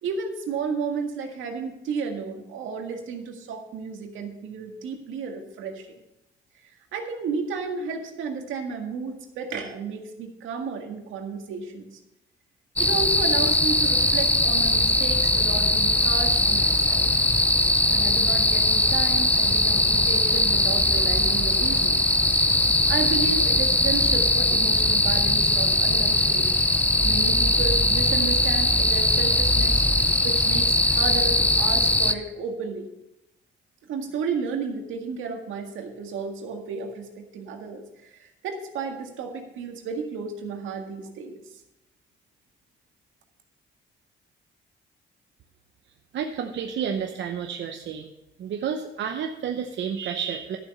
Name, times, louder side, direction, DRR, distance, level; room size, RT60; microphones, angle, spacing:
voice 1, 0.0-5.9 6.6-12.0 12.8-17.3 17.9-22.0 22.9-26.5 27.0-29.9 30.2-32.9 33.8-41.4, right 5 dB, 80° right, 3 dB, 1.9 m, -33 dB
sound 1, 12.8-32.1, left 1 dB, 5° left, 0.6 m, -21 dB
voice 2, 46.1-48.1 48.4-50.6, right 7 dB, 65° right, 4 dB, 0.8 m, -30 dB
12.0 x 7.2 x 5.5 m, 0.88 s
cardioid pair, 90°, 20 cm